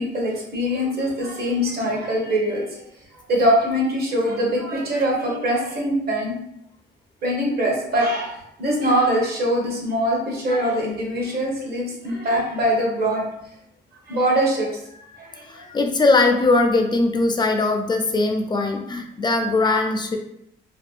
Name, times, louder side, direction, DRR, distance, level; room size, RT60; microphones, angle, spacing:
voice 1, 0.0-2.9 3.3-6.4 7.2-13.3 14.1-14.8 15.2-15.4 19.7-19.9, equal, 50° right, -2 dB, 1.0 m, -23 dB
voice 2, 15.5-20.2, left 3 dB, 20° left, 4 dB, 0.4 m, -20 dB
2.8 x 2.1 x 2.4 m, 0.78 s
cardioid pair, 90°, 20 cm